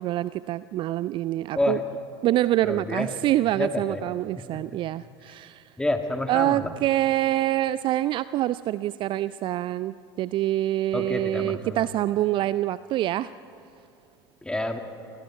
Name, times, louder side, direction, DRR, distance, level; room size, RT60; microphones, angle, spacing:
voice 1, 0.0-1.8 2.2-5.7 6.3-13.3, right 14 dB, 40° right, 16 dB, 0.5 m, -26 dB
voice 2, 2.6-3.1 3.6-4.0 4.5-4.6 5.8-6.7 10.9-11.8 14.4-14.8, left 1 dB, 5° left, 5 dB, 2.4 m, -28 dB
29.5 x 26.0 x 4.7 m, 2.8 s
figure-of-eight pair, 75°, 13 cm